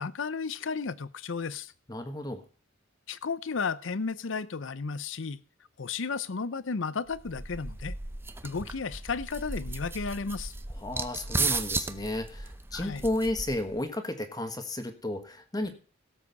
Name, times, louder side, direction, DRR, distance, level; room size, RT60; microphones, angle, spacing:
voice 1, 0.0-1.7 3.1-5.4 5.8-8.0 8.4-10.5 12.7-13.0, left 5 dB, 75° left, 0.6 m, -33 dB
voice 2, 1.9-2.4 10.8-15.7, left 1 dB, 20° left, 1.4 m, -33 dB
sound 1, 7.1-13.8, right 3 dB, 10° right, 0.6 m, -35 dB
17.0 x 7.6 x 4.1 m
head